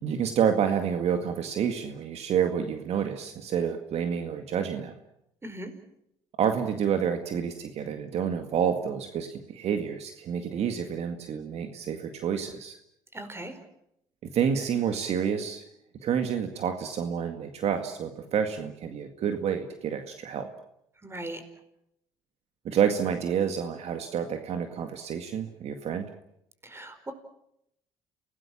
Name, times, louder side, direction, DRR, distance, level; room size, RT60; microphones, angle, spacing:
voice 1, 0.0-5.0 6.4-12.8 14.2-15.6 16.0-20.5 22.6-26.1, right 8 dB, 60° right, 6 dB, 2.0 m, -29 dB
voice 2, 5.4-5.7 13.1-13.6 21.0-21.4 26.6-27.1, right 1 dB, 20° right, 9 dB, 5.0 m, -38 dB
28.5 x 18.5 x 7.4 m, 0.78 s
supercardioid pair, 70°, 12 cm